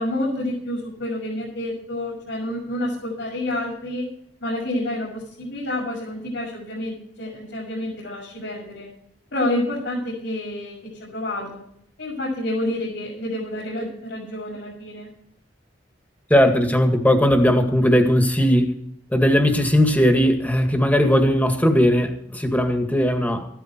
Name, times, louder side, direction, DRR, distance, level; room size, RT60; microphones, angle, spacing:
voice 1, 0.0-4.1 4.4-8.9 9.3-11.6 12.0-15.1, left 1 dB, 75° left, -5 dB, 7.0 m, -28 dB
voice 2, 16.3-18.7 19.1-23.5, equal, 10° left, 5 dB, 2.1 m, -18 dB
15.0 x 13.5 x 4.6 m, 0.68 s
head